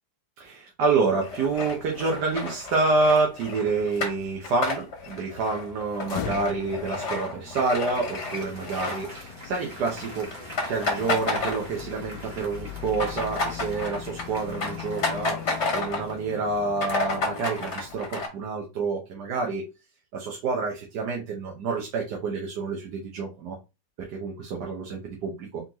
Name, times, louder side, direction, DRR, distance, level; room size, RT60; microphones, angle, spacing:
voice 1, 0.4-10.4 10.7-19.7 20.1-23.5 24.0-25.6, right 4 dB, 70° right, 1 dB, 1.5 m, -28 dB
sound 1, 1.2-9.6 9.9-10.1 10.3-12.1 12.4-16.2 16.5-16.6 16.8-18.3, left 3 dB, 45° left, 1.4 m, -31 dB
sound 2, 6.0-18.0, left 11 dB, 80° left, 1.2 m, -41 dB
Applause, 7.4-16.3, equal, 30° right, 1.5 m, -45 dB
4.3 x 3.8 x 2.9 m, 0.27 s
omnidirectional pair, 1.8 m